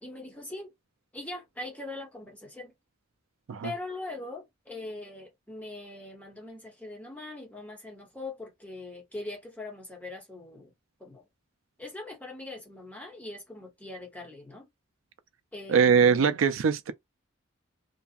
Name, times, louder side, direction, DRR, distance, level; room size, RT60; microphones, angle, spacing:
voice 1, 0.0-0.7 1.1-2.7 3.6-10.7 11.0-11.2 11.8-14.7 15.5-16.2, left 2 dB, 10° left, 1.1 m, -41 dB
voice 2, 15.7-16.9, right 6 dB, 70° right, 0.4 m, -22 dB
2.7 x 2.3 x 2.4 m
head